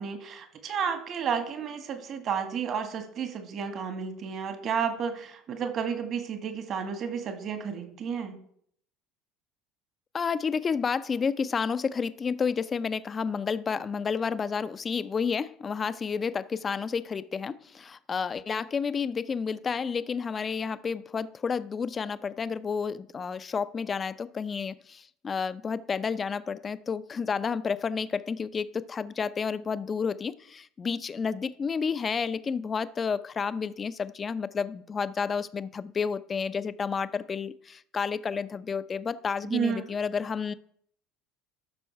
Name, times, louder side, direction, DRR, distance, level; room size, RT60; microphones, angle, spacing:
voice 1, 0.0-8.4 39.5-39.9, right 6 dB, 45° right, 6 dB, 1.9 m, -32 dB
voice 2, 10.1-40.5, left 6 dB, 30° left, 15 dB, 0.6 m, -30 dB
13.0 x 6.2 x 4.7 m, 0.65 s
hypercardioid pair, 70°, 0 cm